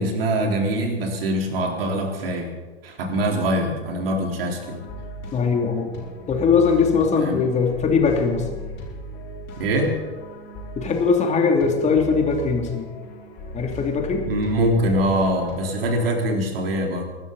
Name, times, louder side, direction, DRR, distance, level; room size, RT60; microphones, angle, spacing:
voice 1, 0.0-2.5 2.8-4.8 7.2-7.4 9.6-10.0 14.1-17.0, right 1 dB, 60° right, 2 dB, 3.8 m, -23 dB
sound 1, 4.6-16.1, left 1 dB, 35° left, 5.9 m, -37 dB
voice 2, 5.3-5.9 6.3-8.5 10.8-12.9 13.5-14.3, left 5 dB, 20° left, 3 dB, 2.7 m, -20 dB
23.5 x 13.0 x 4.1 m, 1.4 s
figure-of-eight pair, 100°, 33 cm